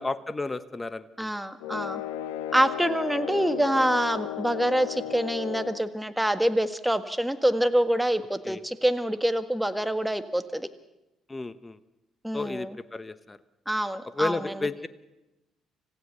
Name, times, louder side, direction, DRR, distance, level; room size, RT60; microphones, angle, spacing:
voice 1, 0.0-1.4 8.4-8.6 11.3-11.8 12.3-13.4 14.1-14.9, left 3 dB, 25° left, 14 dB, 1.1 m, -32 dB
voice 2, 1.2-2.0 2.5-10.7 12.2-12.8 13.7-14.7, right 1 dB, 5° right, 10 dB, 1.6 m, -26 dB
sound 1, 1.6-5.9, left 11 dB, 85° left, 0.8 m, -34 dB
26.0 x 16.0 x 6.8 m, 0.99 s
hypercardioid pair, 50°, 0 cm